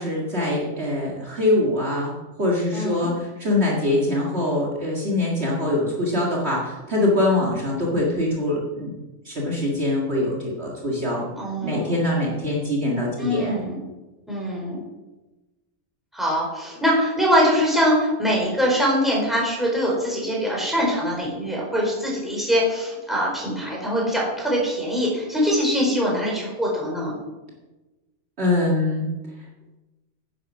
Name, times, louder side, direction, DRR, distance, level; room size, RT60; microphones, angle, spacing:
voice 1, 0.0-2.1 2.4-8.9 9.3-11.2 11.6-13.6 28.4-29.0, left 1 dB, 50° right, -3 dB, 2.2 m, -23 dB
voice 2, 2.7-3.2 11.3-12.0 13.2-13.8 14.3-14.8 16.1-27.2, equal, ahead, -4 dB, 4.6 m, -23 dB
10.0 x 9.9 x 6.1 m, 1.1 s
omnidirectional pair, 1.4 m